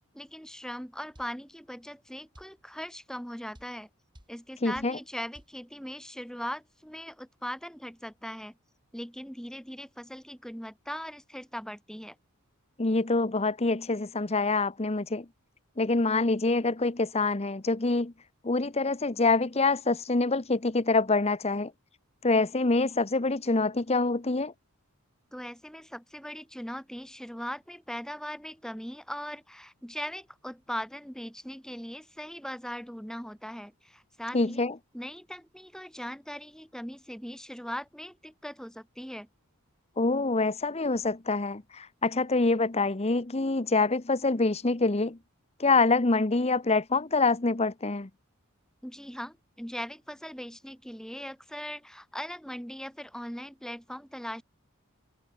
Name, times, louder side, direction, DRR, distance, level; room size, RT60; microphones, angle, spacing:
voice 1, 0.1-3.9 4.3-8.6 8.9-12.2 25.3-34.7 34.9-39.3 48.8-54.4, equal, 5° left, 7.0 m, -40 dB
Metal Bass Drum, 1.2-1.4 2.4-2.6 3.6-3.8 4.2-4.4 4.8-5.0 5.4-5.6, equal, 20° right, 7.0 m, -52 dB
voice 2, 4.6-5.0 12.8-15.3 15.8-18.1 18.4-21.7 22.2-24.5 34.3-34.7 40.0-45.2 45.6-48.1, left 3 dB, 30° left, 0.9 m, -26 dB
open air
head